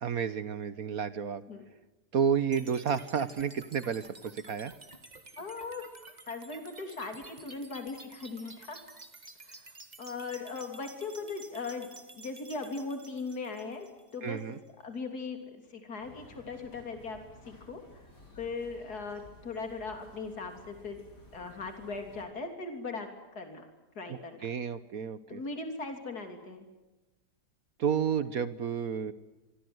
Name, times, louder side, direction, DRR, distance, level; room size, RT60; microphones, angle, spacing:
voice 1, 0.0-1.4 2.1-4.7 14.2-14.5 24.1-25.4 27.8-29.1, right 7 dB, 60° right, 14 dB, 1.5 m, -31 dB
sound 1, 2.5-14.5, right 3 dB, 25° right, 1.9 m, -52 dB
voice 2, 5.4-5.9 6.3-8.8 9.4-13.9 14.1-14.4 14.8-18.1 18.4-21.0 21.3-23.1 23.4-23.6 24.0-24.5 25.3-26.7, left 4 dB, 70° left, 5 dB, 3.8 m, -39 dB
sound 2, 16.0-22.2, left 1 dB, 90° left, 5.8 m, -55 dB
25.5 x 25.0 x 8.0 m, 1.1 s
omnidirectional pair, 1.7 m